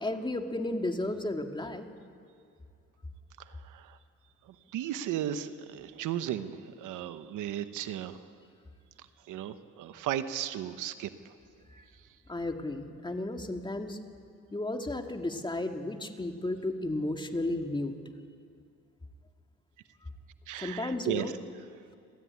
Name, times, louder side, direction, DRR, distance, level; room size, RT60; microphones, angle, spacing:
voice 1, 0.0-1.9 11.7-11.8 12.3-14.0 14.5-17.9 20.6-21.3, left 2 dB, 15° left, 4 dB, 2.0 m, -33 dB
voice 2, 3.4-4.0 4.5-8.2 9.0-11.1 20.5-21.3, right 11 dB, 85° right, 11 dB, 1.1 m, -35 dB
29.0 x 13.5 x 9.6 m, 2.5 s
cardioid pair, 90°, 30 cm